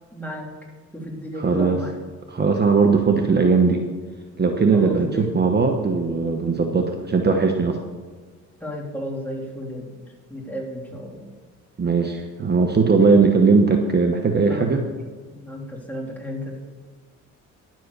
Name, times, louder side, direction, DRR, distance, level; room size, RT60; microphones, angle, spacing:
voice 1, 0.1-0.5 0.9-2.0 4.7-5.3 8.6-9.9 10.3-11.3 12.9-13.2 14.4-14.7 15.3-16.6, left 1 dB, 5° left, -2 dB, 3.2 m, -33 dB
voice 2, 1.4-1.8 2.3-3.8 4.4-7.8 11.8-14.8, right 4 dB, 35° right, 3 dB, 1.2 m, -19 dB
11.0 x 7.7 x 6.8 m, 1.5 s
cardioid pair, 90°, 30 cm